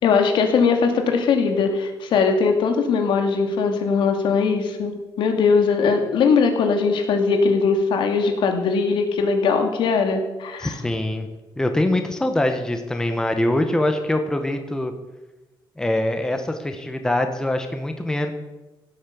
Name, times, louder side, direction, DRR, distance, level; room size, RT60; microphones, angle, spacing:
voice 1, 0.0-10.8, left 5 dB, 75° left, 5 dB, 2.5 m, -20 dB
voice 2, 10.6-11.3 11.6-14.9 15.8-18.3, left 1 dB, 10° left, 6 dB, 1.2 m, -23 dB
16.5 x 8.6 x 7.0 m, 1.1 s
cardioid pair, 160°, 8 cm